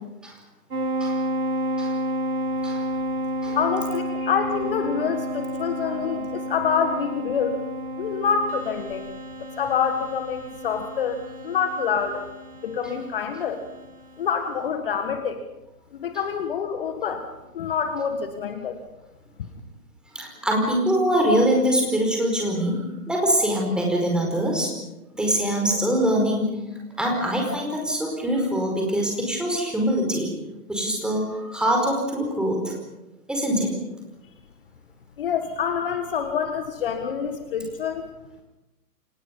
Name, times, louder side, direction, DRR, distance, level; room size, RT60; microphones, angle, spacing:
sound 1, 0.7-13.9, equal, 65° right, 5.7 m, -31 dB
voice 1, 3.6-7.6 8.0-9.1 9.4-12.2 12.6-13.6 14.2-15.4 15.9-17.3 17.5-18.8 35.2-38.1, left 6 dB, 35° left, 7 dB, 1.8 m, -26 dB
voice 2, 20.1-24.7 25.1-26.6 27.0-30.3 30.7-32.7 33.3-33.7, equal, ahead, 0 dB, 4.9 m, -23 dB
29.5 x 26.0 x 5.5 m, 0.98 s
figure-of-eight pair, 140°, 47 cm